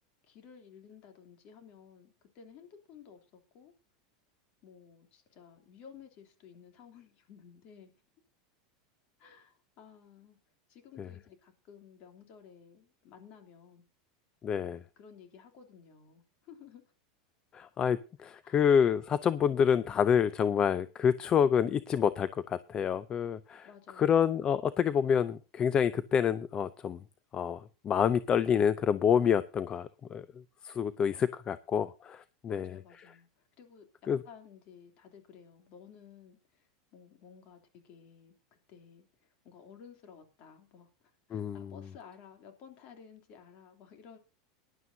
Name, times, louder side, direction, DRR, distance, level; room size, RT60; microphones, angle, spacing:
voice 1, 0.2-3.7 4.6-7.9 9.2-10.4 10.7-13.8 14.6-16.9 18.4-18.7 23.6-24.2 32.5-38.3 38.7-40.9 41.3-44.2, left 7 dB, 50° left, 5 dB, 3.0 m, -55 dB
voice 2, 14.4-14.8 17.5-23.7 24.0-27.0 27.3-30.3 30.6-32.7 34.1-34.2 41.3-41.7, left 8 dB, 30° left, 16 dB, 0.5 m, -28 dB
19.0 x 11.0 x 2.7 m, 0.32 s
hypercardioid pair, 110°, 3 cm